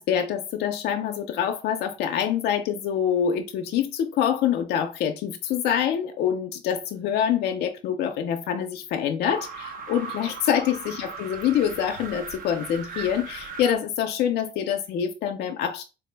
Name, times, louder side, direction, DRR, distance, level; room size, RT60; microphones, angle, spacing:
voice 1, 0.0-15.8, left 9 dB, 75° left, 0.5 m, -26 dB
sound 1, 9.2-13.7, right 5 dB, 55° right, 0.8 m, -38 dB
4.4 x 2.1 x 3.3 m
cardioid pair, 110°, 17 cm